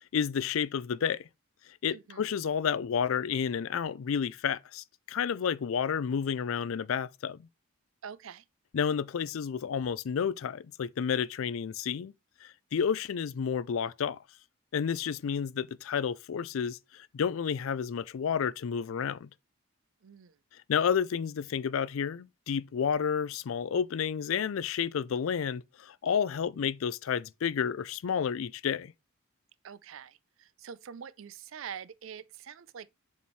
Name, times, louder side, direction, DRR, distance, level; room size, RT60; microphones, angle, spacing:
voice 1, 0.1-1.3 1.8-7.5 8.7-12.1 12.4-14.2 14.7-19.3 20.7-28.9, left 7 dB, 70° left, 0.4 m, -31 dB
voice 2, 1.9-2.3 8.0-8.4 20.0-20.4 29.6-32.9, right 7 dB, 70° right, 0.4 m, -45 dB
7.1 x 4.4 x 3.1 m
head